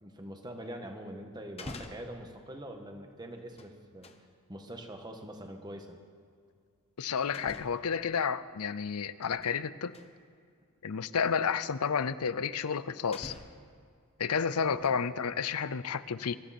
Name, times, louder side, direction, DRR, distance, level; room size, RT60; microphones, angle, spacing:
voice 1, 0.0-4.1 4.5-6.0 14.7-14.9, right 1 dB, 20° right, 4 dB, 1.5 m, -44 dB
sound 1, 1.5-2.2 3.3-4.2 5.9-6.0 7.3-7.9 9.0-9.6 9.9-10.1 11.0-11.1 12.5-12.6 13.1-13.7 14.5-15.1 15.5-15.6, left 2 dB, 25° left, 1.0 m, -47 dB
voice 2, 7.0-9.9 10.8-13.3 14.2-16.4, left 6 dB, 80° left, 15 dB, 0.6 m, -31 dB
23.5 x 13.5 x 4.3 m, 2.2 s
head